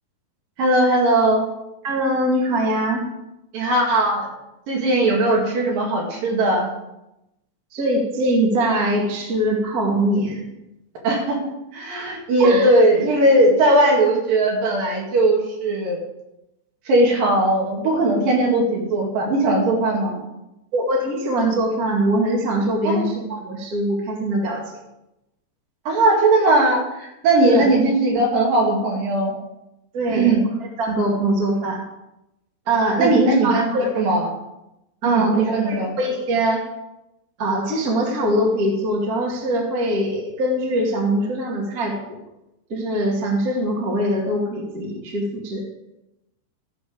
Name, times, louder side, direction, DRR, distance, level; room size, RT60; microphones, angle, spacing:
voice 1, 0.6-1.5 3.5-4.3 4.7-6.7 11.0-11.4 11.7-16.0 16.9-20.2 22.8-23.0 25.8-29.3 30.1-30.4 33.0-33.7 33.9-34.3 35.0-35.9, right 2 dB, 60° right, -1 dB, 3.4 m, -18 dB
voice 2, 1.8-3.1 7.7-10.4 11.9-12.1 12.4-12.7 20.7-24.6 27.4-27.7 29.9-30.3 30.8-31.8 32.7-33.9 35.0-36.6 37.4-42.2 42.7-45.6, right 1 dB, 30° right, -1 dB, 1.9 m, -22 dB
15.0 x 7.0 x 5.0 m, 0.91 s
omnidirectional pair, 4.9 m